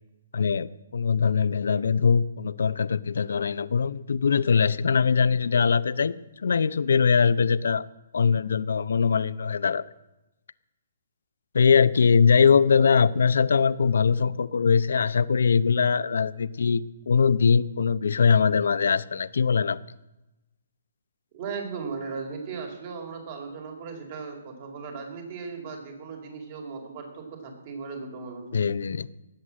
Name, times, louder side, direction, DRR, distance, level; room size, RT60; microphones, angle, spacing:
voice 1, 0.3-6.1 6.4-7.9 8.1-9.8 11.5-19.8 28.5-29.1, left 6 dB, 80° left, 16 dB, 0.7 m, -22 dB
voice 2, 21.3-28.6, right 5 dB, 40° right, 3 dB, 4.4 m, -37 dB
19.0 x 8.1 x 7.6 m, 0.98 s
hypercardioid pair, 150°, 0 cm